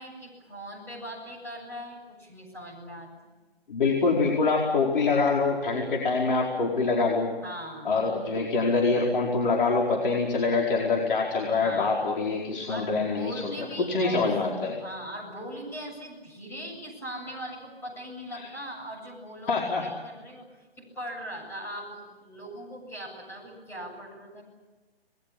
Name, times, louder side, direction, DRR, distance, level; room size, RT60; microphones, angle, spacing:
voice 1, 0.0-3.2 7.4-7.9 11.6-12.0 12.7-14.3 14.8-24.4, equal, 5° left, -3 dB, 7.8 m, -40 dB
voice 2, 3.7-7.3 7.8-14.8 18.3-18.5 19.5-19.8, left 4 dB, 55° left, -1 dB, 4.8 m, -25 dB
28.5 x 21.0 x 8.6 m, 1.2 s
hypercardioid pair, 155°, 31 cm